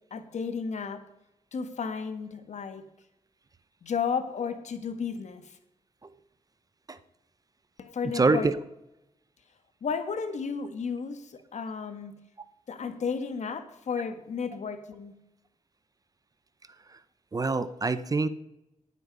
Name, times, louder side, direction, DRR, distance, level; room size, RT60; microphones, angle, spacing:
voice 1, 0.1-1.0 1.5-2.9 3.8-5.6 7.8-8.5 9.8-12.1 12.7-15.1, left 5 dB, 65° left, 9 dB, 1.4 m, -33 dB
voice 2, 8.1-8.5 17.3-18.3, right 3 dB, 30° right, 14 dB, 0.6 m, -25 dB
18.5 x 8.3 x 5.4 m, 0.91 s
wide cardioid pair, 125°, 13 cm